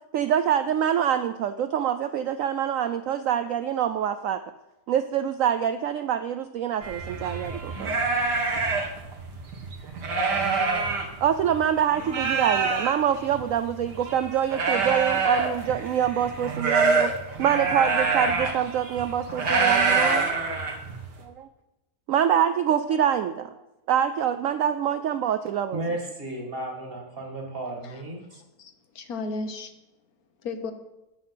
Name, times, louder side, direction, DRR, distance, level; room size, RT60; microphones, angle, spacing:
voice 1, 0.1-4.4 4.9-8.0 11.2-17.1 17.4-20.3 21.2-21.5 22.1-23.5 23.9-25.8, right 9 dB, 70° right, 10 dB, 0.8 m, -25 dB
sound 1, 6.8-11.6 11.9-21.2, right 4 dB, 85° right, 2.3 m, -26 dB
voice 2, 25.7-28.2, right 2 dB, 35° right, 1 dB, 2.1 m, -33 dB
voice 3, 27.8-29.7 30.4-30.7, left 3 dB, 65° left, 8 dB, 1.3 m, -35 dB
9.4 x 8.3 x 5.8 m, 0.97 s
omnidirectional pair, 1.8 m